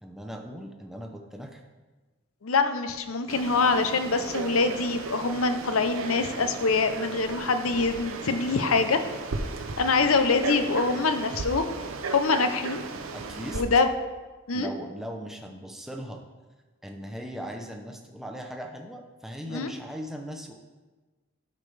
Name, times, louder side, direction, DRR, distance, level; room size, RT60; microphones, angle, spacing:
voice 1, 0.0-1.6 13.1-13.6 14.5-16.2 16.8-20.5, equal, ahead, 2 dB, 0.7 m, -39 dB
voice 2, 2.4-9.0 9.8-11.7 12.1-12.8 13.5-13.9 14.5-14.7 19.5-19.7, left 4 dB, 90° left, 8 dB, 0.7 m, -24 dB
Frog, 3.3-13.6, right 4 dB, 80° right, 0.7 m, -36 dB
12.0 x 5.2 x 3.3 m, 1.3 s
head